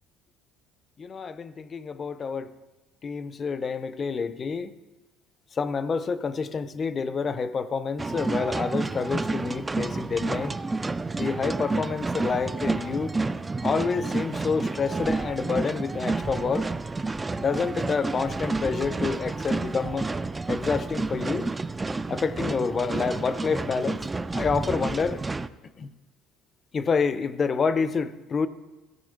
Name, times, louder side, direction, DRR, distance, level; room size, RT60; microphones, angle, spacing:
voice 1, 1.0-2.5 3.0-4.7 5.5-10.5 11.2-13.2 13.6-16.7 17.4-20.1 20.5-21.5 22.1-25.2 25.8-25.9 26.7-28.5, left 5 dB, 30° left, 0.6 m, -28 dB
sound 1, 8.0-25.5, right 3 dB, 15° right, 0.3 m, -30 dB
16.0 x 6.3 x 5.2 m
cardioid pair, 130°, 0 cm